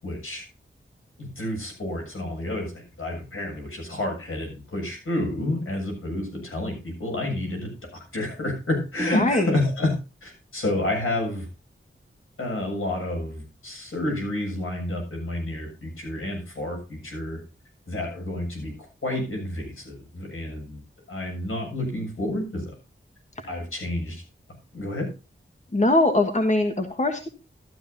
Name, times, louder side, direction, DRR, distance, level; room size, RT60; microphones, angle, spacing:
voice 1, 0.0-0.4 1.2-10.0 10.2-11.5 12.4-17.4 17.9-20.8 21.1-22.7 23.5-24.2 24.7-25.1, left 1 dB, 80° left, 0 dB, 7.3 m, -29 dB
voice 2, 9.1-9.6 23.4-23.5 25.7-27.3, left 2 dB, 35° left, 5 dB, 1.6 m, -22 dB
13.5 x 12.5 x 2.8 m, 0.31 s
wide cardioid pair, 95°, 21 cm